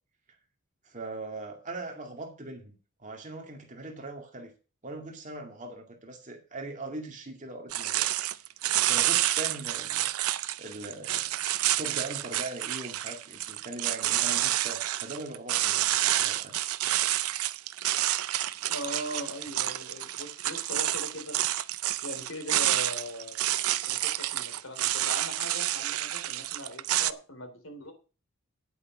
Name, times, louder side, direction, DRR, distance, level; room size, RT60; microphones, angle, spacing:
voice 1, 0.9-4.5 4.8-8.1 8.9-10.1 10.6-11.3 11.8-16.5, right 2 dB, 35° right, 3 dB, 2.2 m, -40 dB
sound 1, 7.7-27.1, right 14 dB, 80° right, 0.5 m, -29 dB
voice 2, 18.7-21.4 22.0-23.4 23.9-27.9, left 1 dB, 65° left, 6 dB, 3.0 m, -40 dB
9.7 x 8.5 x 6.1 m, 0.35 s
head